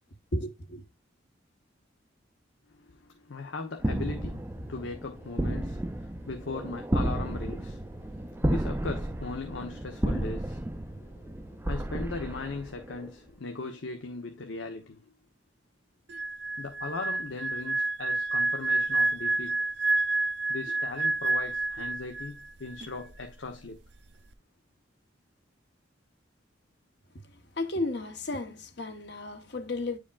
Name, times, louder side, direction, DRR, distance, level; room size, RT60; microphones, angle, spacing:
voice 1, 0.3-0.8 27.3-30.0, left 2 dB, 60° left, 1.1 m, -33 dB
voice 2, 2.7-15.0 16.6-19.7 20.5-23.8, left 3 dB, 90° left, 1.0 m, -39 dB
sound 1, 3.8-13.1, right 1 dB, 10° right, 0.4 m, -32 dB
sound 2, 16.1-22.5 22.7-23.0, right 2 dB, 65° right, 0.6 m, -29 dB
9.9 x 5.0 x 2.4 m
head